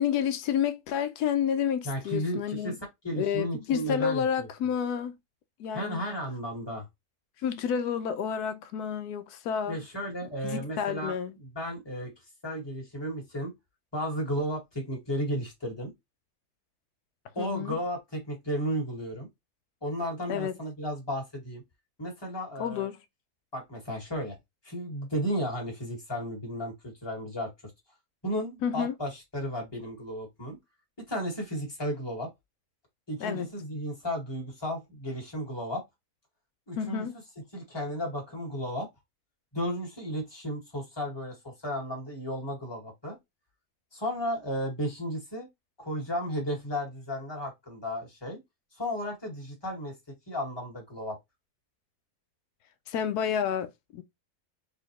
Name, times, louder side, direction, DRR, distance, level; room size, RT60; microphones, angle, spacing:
voice 1, 0.0-2.8 3.2-5.1 5.6-6.0 7.4-9.8 10.4-11.3 17.4-17.8 20.3-20.6 22.6-23.0 28.6-28.9 33.2-33.5 36.8-37.1 52.9-54.0, left 8 dB, 85° left, 1.1 m, -30 dB
voice 2, 1.8-2.8 3.0-4.5 5.7-6.9 9.7-12.1 12.4-13.5 13.9-15.9 17.4-19.3 19.8-21.6 22.0-22.9 23.5-24.4 24.6-27.5 28.2-30.6 31.1-32.3 33.1-35.8 36.7-37.1 37.5-38.9 39.5-43.2 43.9-45.5 45.8-48.4 48.7-50.0 50.3-51.2, equal, 15° left, 1.8 m, -34 dB
4.1 x 3.8 x 3.0 m
omnidirectional pair, 1.6 m